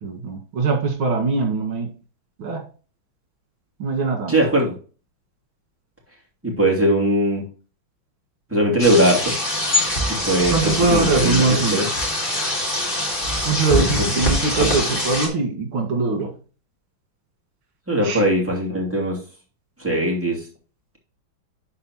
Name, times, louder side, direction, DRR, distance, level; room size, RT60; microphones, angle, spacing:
voice 1, 0.0-1.9 2.4-2.6 3.8-4.3 10.5-11.8 13.4-16.3 18.0-18.2, right 4 dB, 80° right, 3 dB, 2.7 m, -22 dB
voice 2, 4.3-4.7 6.4-7.4 8.5-9.4 10.2-11.9 14.0-14.2 17.9-19.2 19.8-20.5, right 1 dB, 5° right, -3 dB, 2.4 m, -20 dB
sound 1, 8.8-15.3, left 1 dB, 25° left, 2.1 m, -23 dB
11.5 x 4.3 x 3.0 m, 0.37 s
omnidirectional pair, 2.2 m